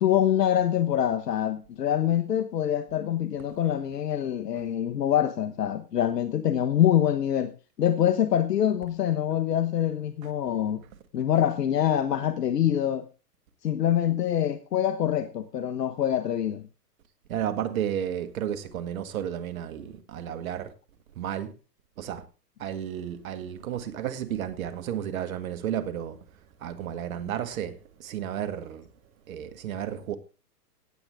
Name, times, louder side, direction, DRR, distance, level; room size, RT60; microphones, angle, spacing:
voice 1, 0.0-7.5 7.8-10.8 11.1-13.1 13.6-16.6, left 10 dB, 70° left, 1.3 m, -25 dB
voice 2, 17.3-20.7 21.2-21.5 22.0-22.3 22.6-26.2 26.6-28.9 29.3-30.2, right 10 dB, 55° right, 1.9 m, -32 dB
17.5 x 8.0 x 3.6 m
hypercardioid pair, 135°, 49 cm